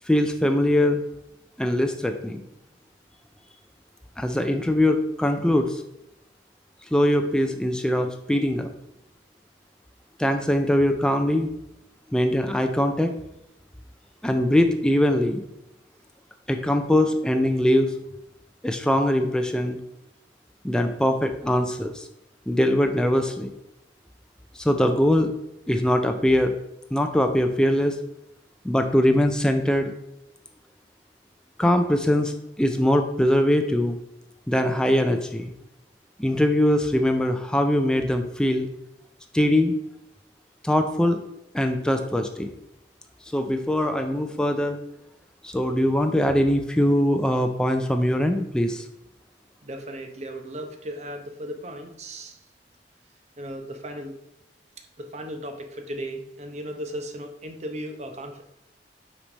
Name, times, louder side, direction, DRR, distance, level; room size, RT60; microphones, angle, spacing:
voice 1, 0.1-1.0 1.6-2.4 4.2-5.8 6.9-8.7 10.2-11.5 12.1-13.1 14.2-15.4 16.5-17.9 18.6-19.8 20.6-22.1 22.5-23.5 24.6-25.3 25.7-26.5 26.9-27.9 28.6-29.9 31.6-32.3 32.6-34.0 34.5-35.5 36.2-38.7 39.3-39.7 40.6-41.2 41.5-42.5 43.3-44.8 45.4-48.8, left 1 dB, 5° left, 6 dB, 0.3 m, -22 dB
voice 2, 49.6-52.4 53.4-54.1 55.0-58.4, equal, 40° right, 5 dB, 0.7 m, -36 dB
5.9 x 3.2 x 5.2 m, 0.83 s
head